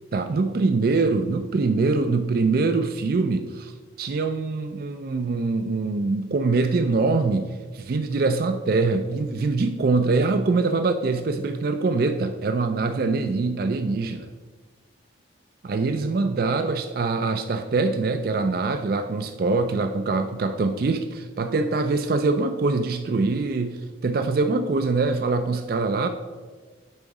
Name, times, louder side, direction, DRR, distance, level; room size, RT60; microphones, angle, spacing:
voice 1, 0.1-3.7 4.0-14.3 15.6-26.1, right 3 dB, 50° right, 8 dB, 0.4 m, -24 dB
8.8 x 3.9 x 4.7 m, 1.4 s
head